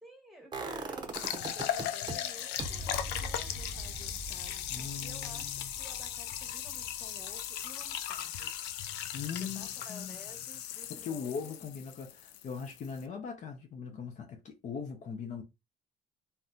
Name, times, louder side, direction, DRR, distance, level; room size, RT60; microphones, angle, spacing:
voice 1, 0.0-8.5 9.4-11.6, equal, ahead, 1.3 m, -54 dB
sound 1, 0.5-2.1 2.6-8.4 8.7-8.8, right 2 dB, 25° right, 0.7 m, -42 dB
sound 2, 1.1-13.0, left 10 dB, 80° left, 0.4 m, -38 dB
voice 2, 4.7-5.7 9.1-10.2 10.9-15.4, left 6 dB, 45° left, 0.7 m, -40 dB
2.7 x 2.2 x 3.7 m
cardioid pair, 110°, 17 cm